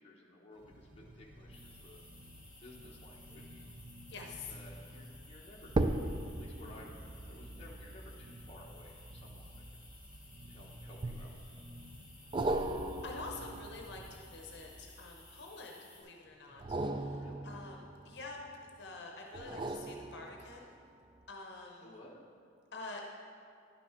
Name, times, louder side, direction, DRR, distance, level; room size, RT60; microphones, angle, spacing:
voice 1, 0.0-2.0 2.6-3.6 4.5-5.7 6.1-9.5 10.4-11.3 11.7-11.8 17.1-17.5 21.8-22.3, left 1 dB, 30° left, -2 dB, 1.0 m, -56 dB
sound 1, 0.5-14.2, equal, 85° right, 0.9 m, -54 dB
sound 2, 1.5-16.0, left 2 dB, 5° right, 2.1 m, -58 dB
voice 2, 4.1-4.5 13.0-16.6 16.9-17.1 17.4-17.8 18.0-18.4 18.8-20.7 21.3-21.9 22.7-23.1, left 3 dB, 60° left, 1 dB, 0.9 m, -47 dB
sound 3, 4.5-4.8 5.7-10.3 11.0-11.6 12.3-15.3 16.5-18.6 19.3-20.8 21.2-21.3, right 2 dB, 25° right, 0.3 m, -38 dB
10.5 x 6.2 x 4.4 m, 2.2 s
head